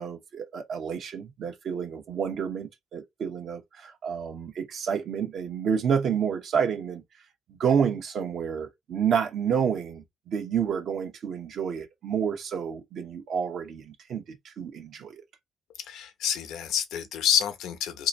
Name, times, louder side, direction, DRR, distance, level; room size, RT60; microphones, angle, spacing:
voice 1, 0.0-7.0 7.6-15.2, right 7 dB, 65° right, 0.9 m, -29 dB
voice 2, 15.9-18.1, left 9 dB, 85° left, 0.7 m, -28 dB
2.9 x 2.6 x 4.1 m
cardioid pair, 90°, 0 cm